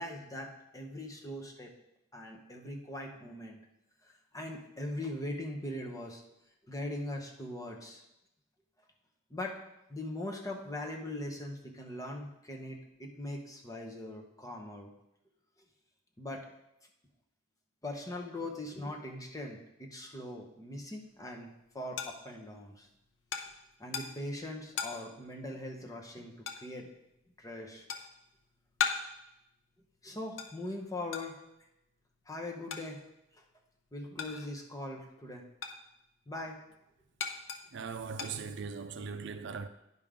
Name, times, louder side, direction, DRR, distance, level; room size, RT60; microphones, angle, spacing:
voice 1, 0.0-1.7 2.1-3.6 4.0-6.2 6.7-8.0 9.3-9.6 9.9-14.9 16.2-16.5 17.8-21.5 21.7-22.9 23.8-26.3 26.6-26.9 27.4-27.8 30.0-31.4 32.3-33.0 33.3-33.4 33.9-35.4 36.3-36.6, left 1 dB, 20° left, 1.0 m, -41 dB
sound 1, 21.0-34.8 35.1-39.0, left 6 dB, 70° left, 0.7 m, -41 dB
voice 2, 37.7-39.7, right 5 dB, 65° right, 0.5 m, -39 dB
10.0 x 5.2 x 3.7 m
head